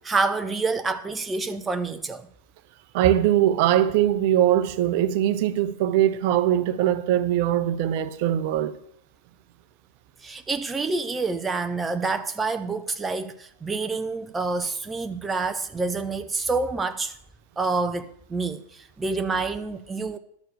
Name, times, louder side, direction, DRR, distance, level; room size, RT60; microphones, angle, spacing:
voice 1, 0.0-2.3 10.2-17.2 17.6-20.2, right 3 dB, 15° right, 0.5 m, -27 dB
voice 2, 2.9-8.8, right 11 dB, 50° right, 0.7 m, -21 dB
11.5 x 6.6 x 6.6 m
figure-of-eight pair, 90°, 0 cm